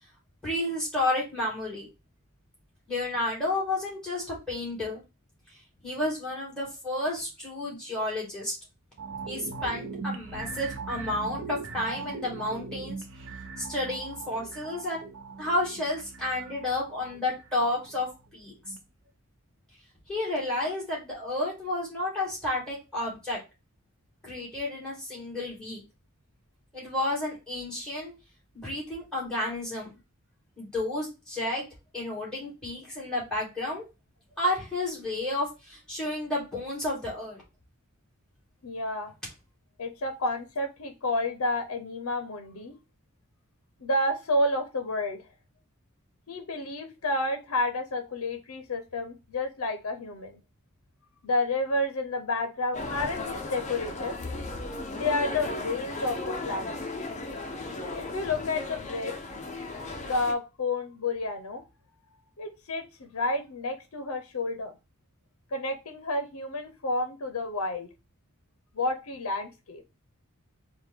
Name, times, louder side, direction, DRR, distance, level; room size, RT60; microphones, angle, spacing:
voice 1, 0.4-1.9 2.9-5.0 5.8-8.6 9.2-13.0 13.6-15.1 15.4-18.1 18.3-18.5 20.1-23.4 24.2-25.8 26.7-28.1 28.6-29.9 30.6-31.7 31.9-33.8 34.4-37.4, left 1 dB, 5° left, -5 dB, 2.1 m, -31 dB
sound 1, 9.0-18.3 18.7-18.8, right 4 dB, 60° right, 0.5 m, -40 dB
voice 2, 38.6-39.1 39.8-42.7 43.8-45.2 46.3-50.4 51.2-54.1 54.9-56.8 57.9-59.1 60.0-61.6 62.4-64.7 65.5-67.9 68.7-69.8, left 2 dB, 75° left, 8 dB, 0.6 m, -30 dB
sound 2, 52.7-60.3, left 2 dB, 30° left, 0.5 m, -36 dB
4.3 x 2.2 x 3.4 m, 0.26 s
head